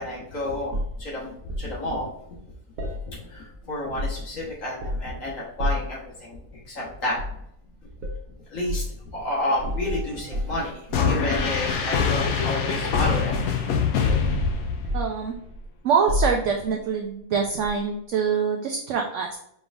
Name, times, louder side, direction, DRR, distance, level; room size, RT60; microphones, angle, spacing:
voice 1, 0.0-2.3 3.0-7.2 8.5-13.4 13.7-13.8, left 1 dB, 65° left, -4 dB, 1.7 m, -31 dB
sound 1, 0.7-1.7 2.8-3.5 3.8-4.4 4.8-5.2 5.6-6.0 7.1-7.4 8.0-8.2 8.7-8.9 9.6-11.0 11.3-12.3 12.9-13.8 14.1-14.4 14.8-15.7 16.1-16.7 17.6-17.8, left 1 dB, 90° right, 1.2 m, -30 dB
sound 2, 10.9-15.2, left 5 dB, 80° left, 1.1 m, -24 dB
voice 2, 14.9-15.4 15.8-19.4, right 6 dB, 70° right, 2 dB, 0.8 m, -24 dB
5.1 x 3.3 x 2.4 m, 0.72 s
omnidirectional pair, 1.5 m